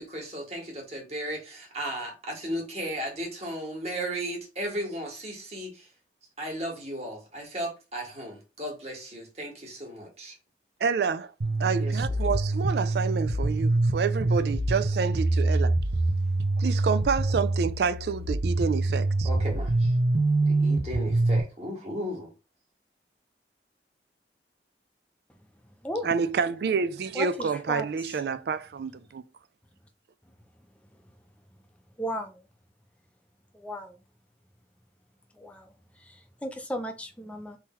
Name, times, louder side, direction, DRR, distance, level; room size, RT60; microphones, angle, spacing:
voice 1, 0.0-5.9 6.4-10.3 11.8-12.0 19.2-19.9 20.4-22.3, right 1 dB, 35° right, 1.7 m, -35 dB
voice 2, 10.8-11.3 11.6-15.8 16.6-19.3 26.0-29.2, right 5 dB, 60° right, 0.3 m, -28 dB
sound 1, 11.4-21.4, right 2 dB, 90° right, 0.7 m, -25 dB
voice 3, 27.1-28.2 32.0-32.4 33.5-34.0 35.3-37.6, equal, 5° left, 0.6 m, -36 dB
3.7 x 2.9 x 4.4 m
head